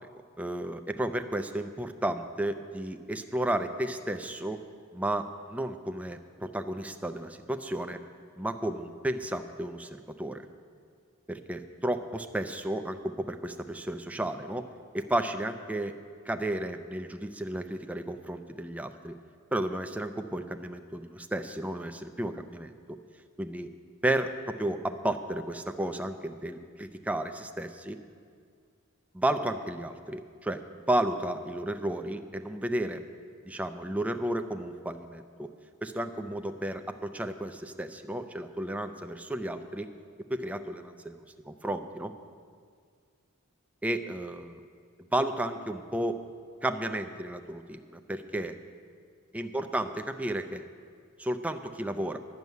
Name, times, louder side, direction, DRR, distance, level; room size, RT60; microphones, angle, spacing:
voice 1, 0.4-4.6 4.9-8.0 8.4-9.9 10.2-10.4 11.3-14.6 14.9-16.0 16.3-19.2 19.5-22.7 23.4-23.7 24.0-28.0 29.1-33.0 33.4-35.5 35.8-39.9 40.3-42.1 43.8-44.6 45.1-46.2 46.6-48.6 49.3-50.6 51.2-52.2, right 1 dB, 5° right, 7 dB, 0.5 m, -33 dB
11.0 x 6.8 x 9.3 m, 2.1 s
head